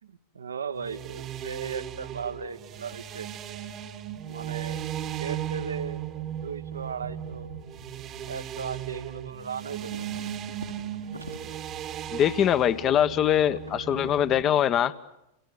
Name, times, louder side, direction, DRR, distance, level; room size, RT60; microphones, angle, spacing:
voice 1, 0.0-3.3 4.3-4.9 5.2-7.5 8.3-10.0 11.3-11.7, right 6 dB, 70° right, 11 dB, 1.4 m, -37 dB
sound 1, 0.8-14.4, right 10 dB, 35° right, 1.5 m, -37 dB
sound 2, 2.8-3.5 3.8-6.4 6.7-9.3 9.6-12.2 12.5-14.9, right 1 dB, 90° right, 3.1 m, -48 dB
voice 2, 12.1-14.9, left 10 dB, 30° left, 12 dB, 1.3 m, -23 dB
29.5 x 27.0 x 7.1 m, 0.85 s
figure-of-eight pair, 90°, 0 cm